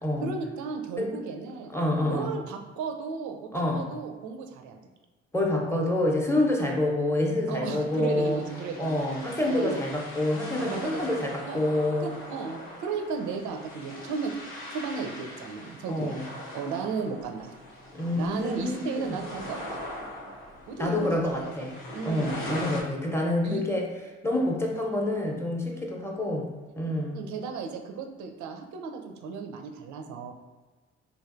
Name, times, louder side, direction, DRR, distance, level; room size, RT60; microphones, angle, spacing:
voice 1, 0.2-1.7 2.0-4.8 7.5-9.0 9.5-9.9 10.6-11.2 11.5-11.6 12.0-14.3 14.7-16.2 16.5-17.5 18.1-19.8 20.7-21.7 21.9-22.7 23.4-23.6 27.1-30.3, right 5 dB, 65° right, 4 dB, 0.5 m, -34 dB
voice 2, 1.7-2.3 3.5-3.8 5.3-8.4 8.8-12.1 15.9-16.2 17.9-19.2 20.8-21.8 22.0-23.9 24.2-26.5 26.8-27.2, left 1 dB, 10° left, -1 dB, 0.7 m, -27 dB
sound 1, 7.7-22.8, left 1 dB, 85° left, 0.7 m, -41 dB
3.2 x 2.5 x 2.5 m, 1.3 s
hypercardioid pair, 45°, 32 cm